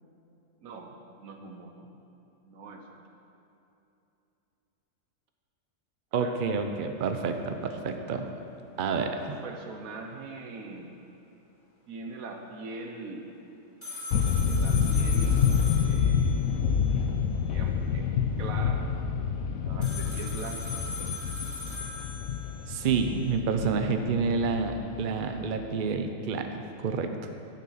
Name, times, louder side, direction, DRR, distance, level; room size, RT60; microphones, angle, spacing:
voice 1, 0.6-1.9 2.4-3.1 6.1-6.4 9.3-11.0 11.9-13.3 14.6-15.5 15.9-16.6 17.5-18.1 18.4-18.8 19.6-20.8, right 3 dB, 85° right, 3 dB, 1.4 m, -42 dB
voice 2, 6.1-8.3 8.8-9.4 22.7-27.3, right 5 dB, 50° right, 6 dB, 0.7 m, -29 dB
sound 1, 13.8-17.2 19.8-23.2, left 3 dB, 20° left, 2.4 m, -40 dB
sound 2, 14.1-25.6, left 6 dB, 80° left, 1.1 m, -28 dB
11.0 x 6.9 x 5.7 m, 2.8 s
omnidirectional pair, 1.5 m